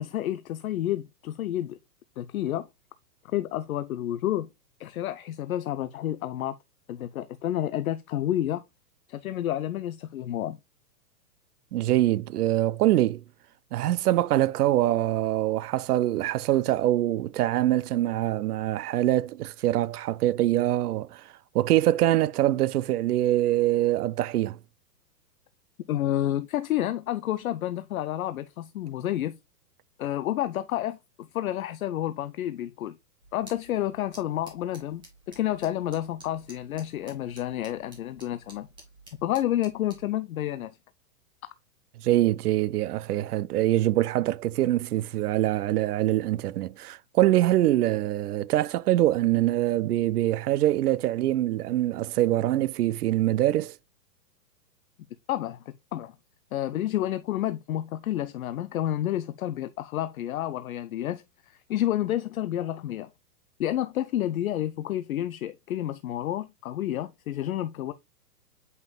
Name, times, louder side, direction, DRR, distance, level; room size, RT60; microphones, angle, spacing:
voice 1, 0.0-1.8 2.2-2.7 3.2-4.5 4.8-6.6 6.9-8.6 9.1-10.6 25.9-29.4 30.0-33.0 33.3-38.7 39.2-40.7 55.3-55.6 55.9-56.1 56.5-63.1 63.6-67.9, left 12 dB, 60° left, 0.6 m, -30 dB
voice 2, 11.7-13.2 13.7-21.2 21.5-24.6 42.0-53.7, right 14 dB, 70° right, 0.6 m, -24 dB
sound 1, 33.2-40.1, right 2 dB, 10° right, 2.4 m, -52 dB
8.0 x 5.4 x 2.2 m
hypercardioid pair, 165°, 48 cm